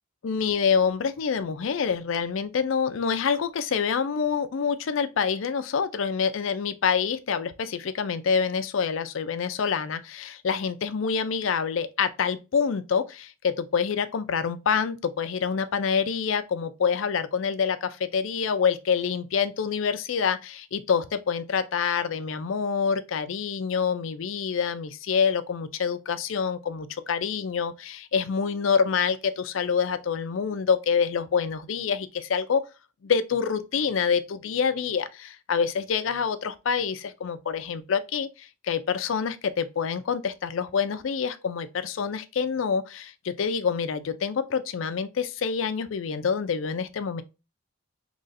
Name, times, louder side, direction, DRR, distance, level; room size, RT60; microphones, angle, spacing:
voice 1, 0.2-32.6 33.0-47.2, left 6 dB, 80° left, 0.4 m, -26 dB
4.0 x 3.0 x 2.5 m
head